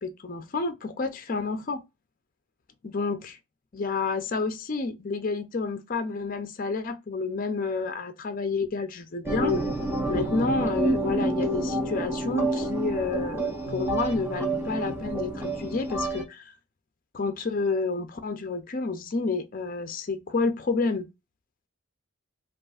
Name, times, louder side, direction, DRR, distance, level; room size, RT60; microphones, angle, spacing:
voice 1, 0.0-1.8 2.8-3.4 3.7-9.6 10.1-16.4 17.1-21.1, left 4 dB, 40° left, 0.5 m, -29 dB
sound 1, 9.3-16.2, right 2 dB, 10° right, 0.7 m, -28 dB
5.0 x 2.4 x 2.4 m
head